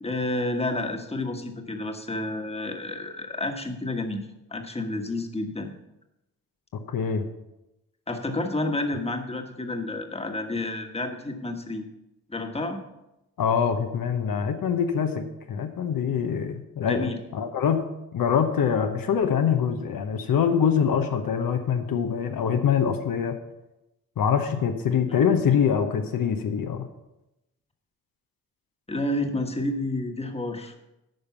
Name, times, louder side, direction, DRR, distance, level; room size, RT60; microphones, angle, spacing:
voice 1, 0.0-5.7 8.1-11.8 12.3-12.8 16.8-17.2 25.2-25.3 28.9-30.8, left 2 dB, 15° left, 4 dB, 1.4 m, -30 dB
voice 2, 6.9-7.2 13.4-17.9 18.1-23.3 24.2-26.9, left 7 dB, 65° left, 5 dB, 1.0 m, -24 dB
9.4 x 5.2 x 7.0 m, 0.94 s
cardioid pair, 70°, 37 cm